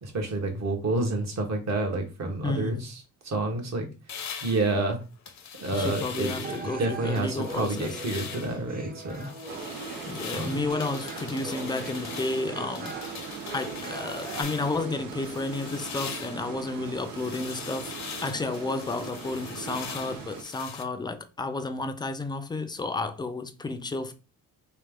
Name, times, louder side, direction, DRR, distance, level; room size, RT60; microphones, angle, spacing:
voice 1, 0.0-3.9 4.4-5.0 5.6-9.3 10.3-10.7, right 2 dB, 50° right, 1.3 m, -29 dB
voice 2, 2.4-2.8 5.7-8.0 10.1-12.9 13.5-17.9 18.2-24.1, left 3 dB, 10° left, 0.5 m, -32 dB
sound 1, 4.1-6.8 7.2-8.6 9.0-14.9 15.2-20.8, left 6 dB, 50° left, 0.7 m, -41 dB
sound 2, 6.4-14.4, right 2 dB, 25° right, 0.8 m, -41 dB
sound 3, 9.5-20.4, right 6 dB, 80° right, 0.9 m, -40 dB
3.2 x 3.1 x 3.6 m
cardioid pair, 110°, 35 cm